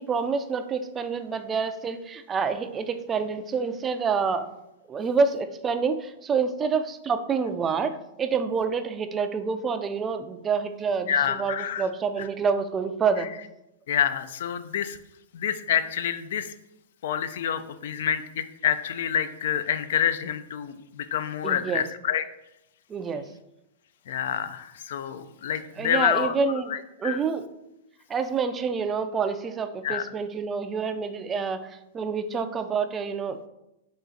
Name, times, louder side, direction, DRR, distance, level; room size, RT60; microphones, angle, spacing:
voice 1, 0.0-4.5 4.9-13.3 21.4-21.8 22.9-23.2 25.8-27.5 28.1-31.7 31.9-33.5, right 5 dB, 20° right, 9 dB, 0.3 m, -27 dB
voice 2, 11.1-11.9 12.2-12.3 13.9-15.0 15.3-16.5 17.0-22.2 24.1-26.3 26.7-27.2 29.8-30.0, left 9 dB, 70° left, 11 dB, 0.3 m, -27 dB
4.0 x 2.4 x 3.8 m, 0.88 s
hypercardioid pair, 130°, 0 cm